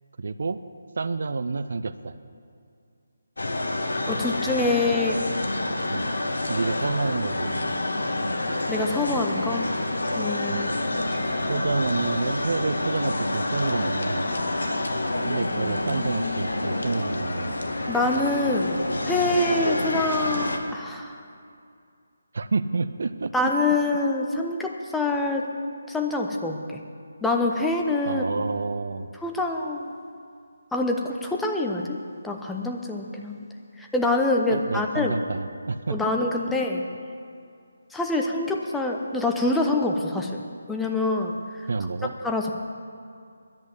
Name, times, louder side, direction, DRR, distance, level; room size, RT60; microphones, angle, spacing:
voice 1, 0.2-0.6 1.0-2.1 5.9-6.1 6.5-7.6 10.5-10.7 11.5-14.3 15.3-17.6 22.3-23.5 28.1-29.1 34.5-36.1 41.7-42.1, right 4 dB, 50° right, 11 dB, 0.5 m, -29 dB
sound 1, 3.4-20.6, left 2 dB, 60° left, 1.3 m, -28 dB
voice 2, 4.1-5.2 8.7-9.7 10.2-10.7 11.1-11.4 17.9-21.2 23.3-25.5 25.9-26.8 27.2-28.2 29.2-29.9 30.7-33.5 33.8-35.2 35.9-36.8 37.9-40.4 40.7-41.7 42.2-42.5, left 2 dB, 5° left, 1 dB, 0.7 m, -26 dB
10.5 x 8.2 x 9.4 m, 2.4 s
figure-of-eight pair, 150°, 0 cm